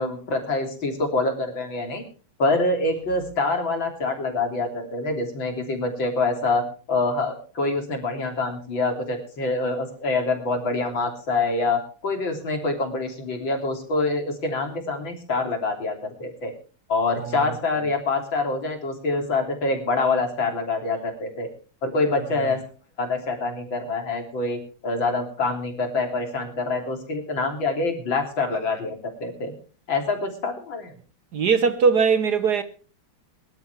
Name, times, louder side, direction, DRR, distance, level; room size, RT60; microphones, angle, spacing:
voice 1, 0.0-2.0 2.4-16.5 16.9-21.5 21.8-22.6 23.0-29.5 29.9-30.9, left 3 dB, 65° left, 4.0 m, -26 dB
voice 2, 17.2-17.6 31.3-32.6, right 5 dB, 55° right, 1.4 m, -20 dB
22.5 x 12.0 x 3.3 m
omnidirectional pair, 2.3 m